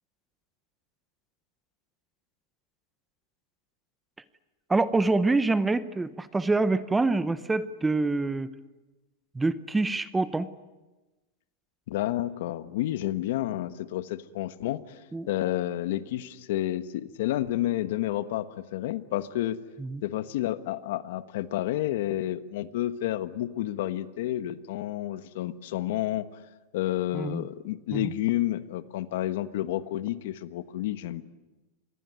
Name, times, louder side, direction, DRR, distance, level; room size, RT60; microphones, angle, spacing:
voice 1, 4.7-8.5 9.3-10.5 15.1-15.3 19.8-20.0 27.1-27.4 27.9-28.1, right 3 dB, 10° right, 15 dB, 0.8 m, -26 dB
voice 2, 11.9-15.0 15.3-19.6 20.0-26.3 26.7-31.2, left 14 dB, 65° left, 13 dB, 1.3 m, -30 dB
26.5 x 21.0 x 9.4 m, 1.1 s
supercardioid pair, 150°, 0 cm